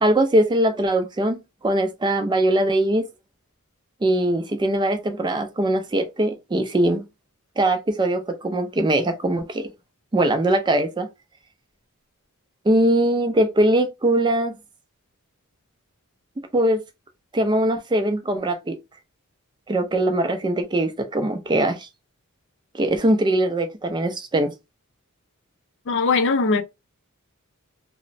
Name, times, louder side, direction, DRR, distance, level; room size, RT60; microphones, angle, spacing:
voice 1, 0.0-3.0 4.0-7.0 7.6-9.7 10.1-11.1 12.7-14.6 16.5-16.8 17.3-18.8 19.7-21.9 22.7-24.5, right 1 dB, 20° right, 0.4 m, -21 dB
voice 2, 25.9-26.6, left 4 dB, 55° left, 0.4 m, -20 dB
2.9 x 2.1 x 2.5 m
head